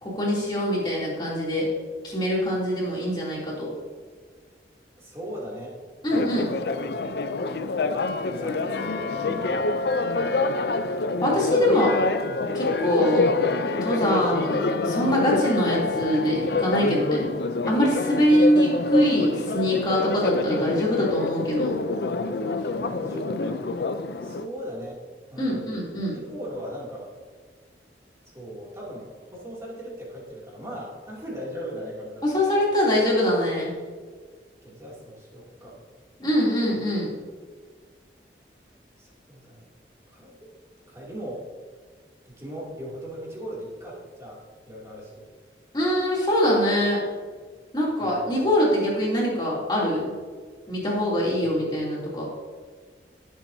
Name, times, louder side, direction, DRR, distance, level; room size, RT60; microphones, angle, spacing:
voice 1, 0.0-1.7 2.0-3.7 6.0-6.5 11.2-11.9 12.5-13.3 13.8-17.2 17.7-21.8 25.4-26.1 32.2-33.7 36.2-37.1 45.7-47.0 47.7-50.1 50.7-52.3, equal, 25° left, -6 dB, 2.9 m, -23 dB
voice 2, 5.0-5.8 6.1-6.4 7.9-9.8 22.5-23.6 24.2-25.0 25.3-25.6 26.3-27.1 28.3-32.5 34.6-35.9 39.0-39.7 40.1-40.5 40.9-41.4 42.3-45.3 48.0-48.2, equal, 15° right, -5 dB, 2.6 m, -38 dB
Church bell, 6.1-24.5, left 3 dB, 65° left, 0.5 m, -27 dB
15.0 x 7.3 x 2.7 m, 1.5 s
head